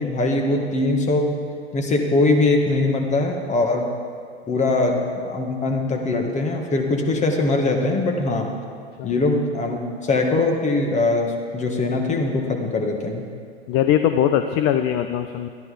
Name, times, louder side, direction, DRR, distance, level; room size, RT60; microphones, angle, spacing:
voice 1, 0.0-1.4 1.7-3.9 4.5-8.5 9.0-13.2, left 2 dB, 20° left, 2 dB, 1.8 m, -21 dB
voice 2, 13.7-15.5, left 10 dB, 40° left, 9 dB, 0.6 m, -20 dB
13.0 x 10.5 x 5.1 m, 2.1 s
hypercardioid pair, 100°, 32 cm